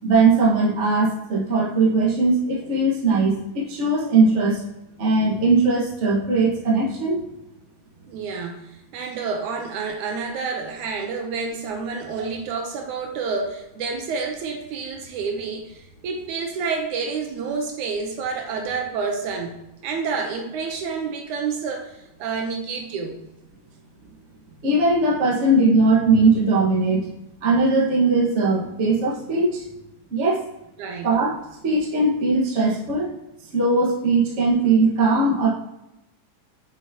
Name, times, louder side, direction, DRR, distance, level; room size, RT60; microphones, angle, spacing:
voice 1, 0.0-4.6 5.0-7.2 24.6-27.1 27.4-29.6 30.1-30.4 31.0-31.3 31.6-33.1 33.5-35.5, right 3 dB, 45° right, -4 dB, 0.9 m, -19 dB
voice 2, 8.1-19.6 19.8-23.2 30.8-31.4, right 5 dB, 75° right, 3 dB, 2.1 m, -29 dB
6.9 x 6.0 x 2.8 m, 0.89 s
omnidirectional pair, 3.8 m